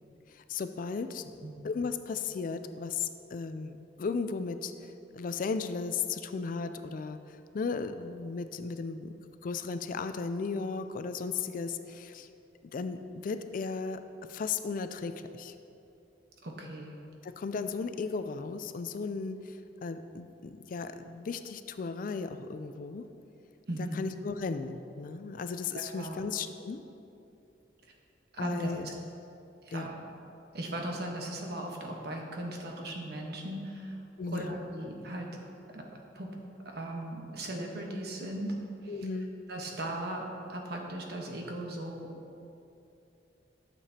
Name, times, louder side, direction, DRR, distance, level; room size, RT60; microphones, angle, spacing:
voice 1, 0.3-1.2 1.6-9.1 9.4-12.3 12.7-14.0 14.3-15.5 17.2-23.0 23.9-26.8 28.4-28.9 29.7-29.9 34.2-34.5 38.9-39.3, left 4 dB, 50° left, 10 dB, 0.4 m, -35 dB
voice 2, 16.4-16.9 23.7-24.0 25.7-26.1 28.3-28.9 29.6-29.9 30.5-34.0 34.2-35.3 35.7-35.9 36.1-36.3 36.6-38.5 38.8-38.9 39.5-42.1, right 1 dB, 65° right, 1 dB, 1.1 m, -37 dB
12.0 x 6.8 x 2.8 m, 2.8 s
head